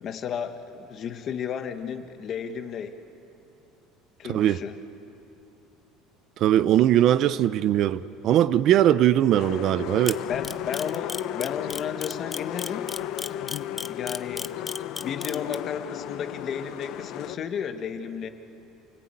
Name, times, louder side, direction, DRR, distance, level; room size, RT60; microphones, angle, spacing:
voice 1, 0.0-3.0 4.2-4.8 10.3-12.9 13.8-14.6 15.0-18.3, left 7 dB, 35° left, 1.3 m, -33 dB
voice 2, 4.3-4.6 6.4-10.2, right 12 dB, 45° right, 0.5 m, -20 dB
sound 1, 9.3-17.4, left 11 dB, 55° left, 0.9 m, -34 dB
Camera, 10.1-15.5, left 4 dB, 15° left, 0.6 m, -33 dB
28.0 x 19.0 x 8.9 m
cardioid pair, 160°, 0 cm